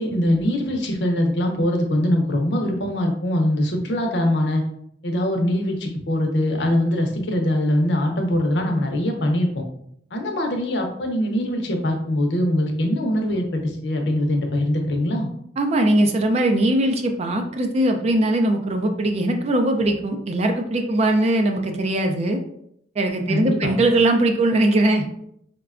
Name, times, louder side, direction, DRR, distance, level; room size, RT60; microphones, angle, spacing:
voice 1, 0.0-4.6 5.0-9.5 10.1-15.3 23.3-23.7, left 1 dB, 70° left, 2 dB, 0.6 m, -22 dB
voice 2, 15.6-22.4 23.0-25.0, right 1 dB, 35° right, 5 dB, 0.4 m, -20 dB
4.7 x 2.2 x 2.4 m, 0.72 s
head